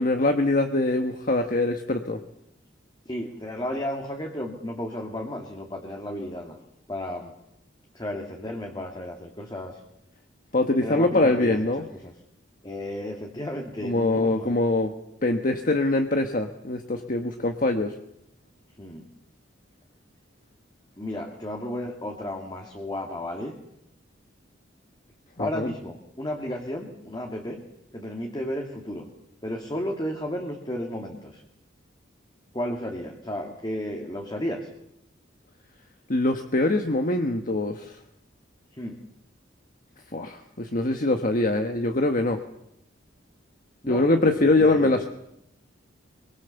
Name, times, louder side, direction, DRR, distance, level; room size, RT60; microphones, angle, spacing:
voice 1, 0.0-2.2 10.5-11.8 13.8-14.9 15.2-17.9 25.4-25.7 36.1-38.0 40.1-42.4 43.9-45.1, left 2 dB, 45° left, 5 dB, 1.4 m, -23 dB
voice 2, 3.1-6.6 6.9-7.3 7.9-9.8 10.8-12.1 12.6-14.5 18.8-19.0 21.0-23.6 25.4-27.6 27.9-29.1 29.4-31.4 32.5-34.7 38.8-39.0 43.8-44.1 44.4-45.0, left 1 dB, 20° left, 2 dB, 2.4 m, -33 dB
25.0 x 23.5 x 7.1 m, 0.81 s
head